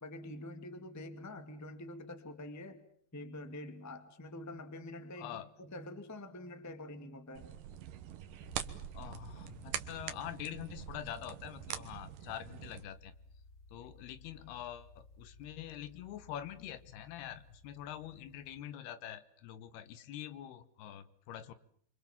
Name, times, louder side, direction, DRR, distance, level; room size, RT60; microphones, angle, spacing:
voice 1, 0.0-2.8 3.1-7.5, left 1 dB, 10° left, 8 dB, 0.9 m, -46 dB
voice 2, 5.2-5.5 8.9-13.1 13.7-21.5, left 11 dB, 80° left, 14 dB, 3.2 m, -45 dB
sound 1, 7.3-12.8, right 10 dB, 65° right, 2.7 m, -44 dB
sound 2, 8.4-18.6, left 1 dB, 40° left, 1.5 m, -59 dB
27.5 x 25.0 x 7.3 m, 0.62 s
omnidirectional pair, 4.5 m